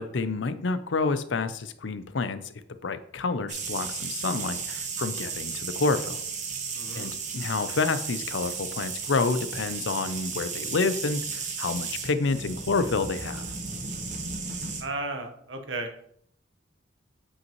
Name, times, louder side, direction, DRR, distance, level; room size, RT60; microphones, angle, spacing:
voice 1, 0.0-2.5 2.8-6.2 7.0-13.5, left 4 dB, 80° left, 12 dB, 0.6 m, -28 dB
sound 1, 3.5-14.8, right 5 dB, 40° right, 1.1 m, -34 dB
voice 2, 6.7-7.1 14.8-15.9, right 2 dB, 80° right, 5 dB, 1.2 m, -34 dB
8.4 x 5.4 x 3.0 m, 0.68 s
head